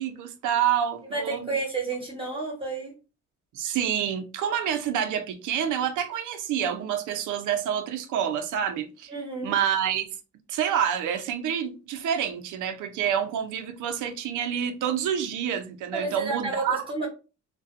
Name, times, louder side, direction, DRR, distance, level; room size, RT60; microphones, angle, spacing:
voice 1, 0.0-1.4 3.5-9.2 9.4-10.1 10.5-16.8, right 9 dB, 80° right, 0.6 m, -28 dB
voice 2, 1.1-2.9 9.1-9.5 15.9-17.1, right 3 dB, 20° right, 1.0 m, -31 dB
2.5 x 2.2 x 2.5 m
cardioid pair, 90°, 30 cm